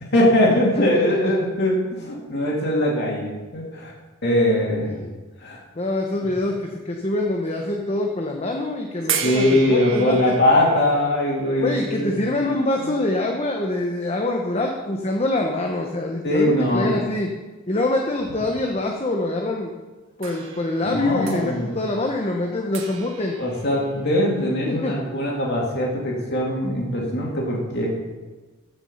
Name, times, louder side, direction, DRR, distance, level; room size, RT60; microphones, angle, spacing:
voice 1, 0.0-3.9 4.2-5.0 5.4-5.6 9.2-12.2 16.2-16.9 20.8-21.7 23.4-27.9, left 1 dB, 50° left, -3 dB, 2.7 m, -21 dB
voice 2, 0.9-1.3 4.8-5.1 5.7-10.3 11.6-17.3 17.7-19.7 20.2-23.4 24.7-25.0, left 2 dB, 30° left, 1 dB, 0.9 m, -25 dB
sound 1, 9.1-14.1 15.0-15.1 20.2-24.5, right 7 dB, 60° right, 1.3 m, -35 dB
14.5 x 6.2 x 5.6 m, 1.2 s
head